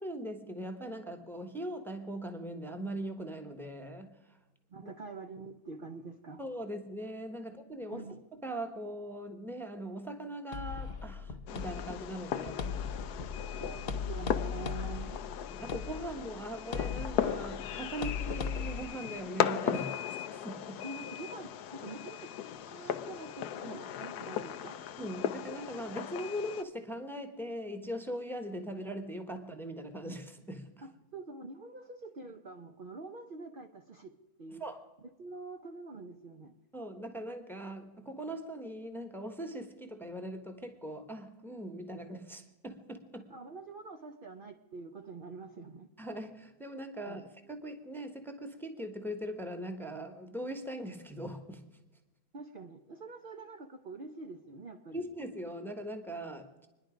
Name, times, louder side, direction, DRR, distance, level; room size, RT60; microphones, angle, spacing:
voice 1, 0.0-4.4 4.8-4.9 6.4-8.1 8.4-12.8 15.5-20.0 20.3-20.8 23.6-23.8 25.0-30.7 34.6-34.8 36.7-43.3 46.0-51.6 54.9-56.7, right 1 dB, ahead, 6 dB, 1.0 m, -40 dB
voice 2, 4.7-6.4 7.9-8.2 13.5-15.2 20.8-24.9 30.8-34.1 34.4-34.6 35.2-36.5 43.3-45.9 47.0-47.2 52.3-55.1, right 3 dB, 45° right, 4 dB, 0.8 m, -46 dB
sound 1, 10.5-18.8, left 6 dB, 50° left, 0.9 m, -38 dB
Fireworks, 11.5-26.6, left 9 dB, 80° left, 1.2 m, -37 dB
26.0 x 10.5 x 5.1 m, 1.1 s
omnidirectional pair, 1.7 m